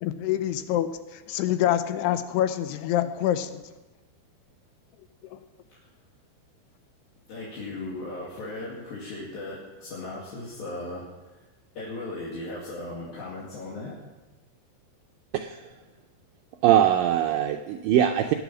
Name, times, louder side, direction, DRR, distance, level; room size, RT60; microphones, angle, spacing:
voice 1, 0.0-3.6 5.3-5.4, left 11 dB, 80° left, 10 dB, 2.8 m, -26 dB
voice 2, 7.3-11.4 11.8-14.0, left 2 dB, 65° left, -6 dB, 4.0 m, -37 dB
voice 3, 15.3-15.7 16.6-18.3, right 11 dB, 85° right, 4 dB, 1.9 m, -22 dB
19.0 x 9.2 x 6.1 m, 1.1 s
omnidirectional pair, 4.8 m